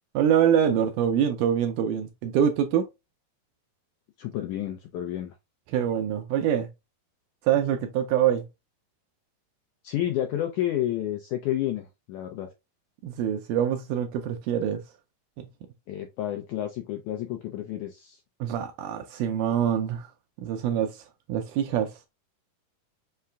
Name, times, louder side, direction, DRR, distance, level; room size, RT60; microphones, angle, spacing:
voice 1, 0.2-2.9 5.7-6.7 7.4-8.5 13.0-14.8 15.4-15.5 18.4-20.1 20.4-21.0 21.3-21.9, right 9 dB, 80° right, 1.9 m, -25 dB
voice 2, 4.2-5.3 9.8-12.5 15.9-18.2, left 12 dB, 85° left, 1.7 m, -30 dB
5.7 x 2.3 x 3.3 m
omnidirectional pair, 4.0 m